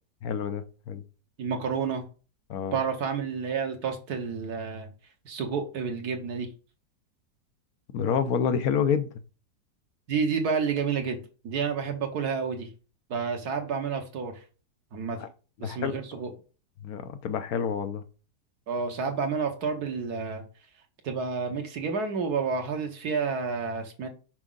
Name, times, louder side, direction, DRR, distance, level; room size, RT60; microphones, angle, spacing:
voice 1, 0.2-1.0 2.5-2.8 7.9-9.1 15.2-15.3 15.6-15.9 16.8-18.0, left 7 dB, 65° left, 10 dB, 1.0 m, -28 dB
voice 2, 1.4-2.0 2.7-4.9 5.2-6.5 10.1-12.7 13.1-14.4 14.9-15.2 15.6-16.3 18.7-20.5 21.0-24.1, right 5 dB, 60° right, 5 dB, 1.5 m, -30 dB
6.1 x 4.8 x 3.9 m, 0.35 s
omnidirectional pair, 1.9 m